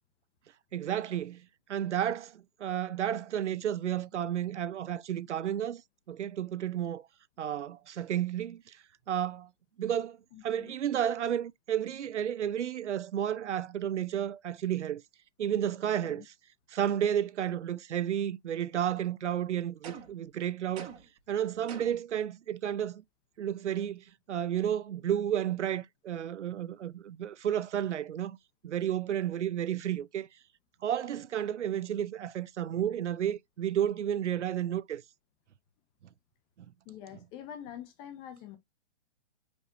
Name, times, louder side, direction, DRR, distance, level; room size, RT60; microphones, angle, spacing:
voice 1, 0.7-5.8 6.1-7.1 7.4-8.8 9.1-9.5 9.8-10.2 10.4-15.0 15.4-16.2 16.7-20.9 21.3-23.0 23.4-28.4 28.6-30.3 30.8-35.0, right 10 dB, 80° right, 0.5 m, -32 dB
voice 2, 10.3-10.7 16.0-16.2 36.9-38.6, left 10 dB, 15° left, 0.5 m, -45 dB
sound 1, 19.8-20.3 20.8-21.2 21.7-22.1, right 7 dB, 30° right, 1.1 m, -45 dB
5.2 x 3.1 x 2.5 m
hypercardioid pair, 135°, 35 cm